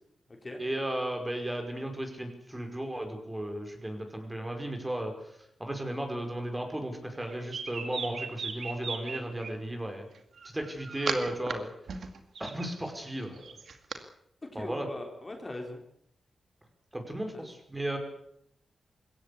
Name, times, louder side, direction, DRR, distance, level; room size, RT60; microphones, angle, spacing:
voice 1, 0.6-5.1 5.6-10.1 10.4-11.7 12.4-13.6 14.5-14.9 16.9-18.0, right 1 dB, 15° right, 4 dB, 5.3 m, -35 dB
sound 1, 7.2-9.5 10.4-11.5 11.9-14.0, right 5 dB, 70° right, 2.3 m, -37 dB
voice 2, 14.5-15.8 17.3-17.5, left 1 dB, 30° left, 3 dB, 4.2 m, -40 dB
21.5 x 17.0 x 8.5 m, 0.73 s
cardioid pair, 75°, 0 cm